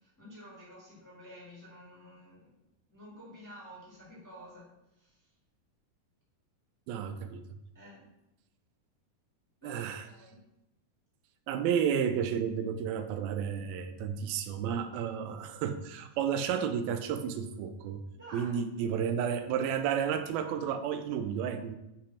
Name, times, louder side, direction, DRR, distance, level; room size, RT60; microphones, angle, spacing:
voice 1, 0.0-2.5 2.9-5.3 7.7-8.1 9.6-10.4 18.1-18.6, equal, 5° left, -7 dB, 1.8 m, -51 dB
voice 2, 6.9-7.4 9.6-10.1 11.5-18.0 18.3-21.8, right 8 dB, 85° right, 8 dB, 2.5 m, -32 dB
8.4 x 5.2 x 4.2 m, 0.88 s
omnidirectional pair, 4.2 m